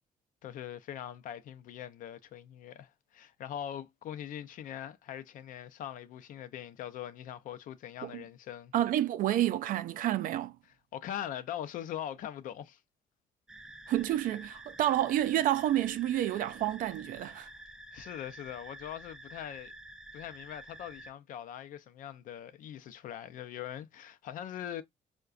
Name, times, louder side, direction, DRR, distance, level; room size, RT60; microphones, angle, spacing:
voice 1, 0.4-8.7 10.9-12.8 17.9-19.7 20.1-24.8, left 10 dB, 75° left, 0.5 m, -42 dB
voice 2, 8.7-10.5 13.9-17.5, right 13 dB, 75° right, 0.4 m, -29 dB
sound 1, 13.5-21.1, right 1 dB, 5° right, 0.3 m, -49 dB
4.6 x 2.2 x 2.4 m
cardioid pair, 105°, 14 cm